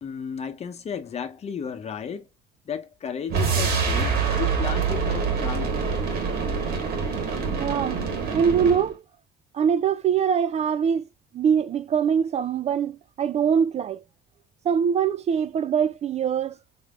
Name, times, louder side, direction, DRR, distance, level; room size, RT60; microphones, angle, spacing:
voice 1, 0.0-2.3 2.7-5.8, left 7 dB, 40° left, 0.8 m, -34 dB
sound 1, 3.3-8.9, right 5 dB, 70° right, 1.6 m, -25 dB
voice 2, 7.6-8.0 8.3-9.0 9.5-11.1 11.3-14.0 14.6-16.6, right 7 dB, 40° right, 0.4 m, -23 dB
4.2 x 3.5 x 2.4 m
cardioid pair, 110°, 17 cm